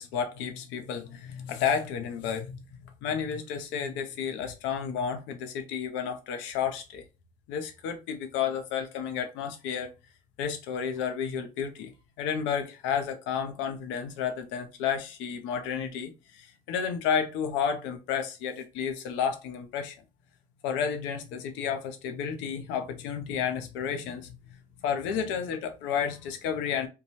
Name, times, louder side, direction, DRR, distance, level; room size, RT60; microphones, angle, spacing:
voice 1, 0.0-2.6 2.8-7.0 7.5-9.9 10.4-11.9 12.2-19.9 20.6-24.4 24.8-26.9, left 7 dB, 75° left, 0.6 m, -31 dB
2.7 x 2.2 x 3.0 m
hypercardioid pair, 55°, 19 cm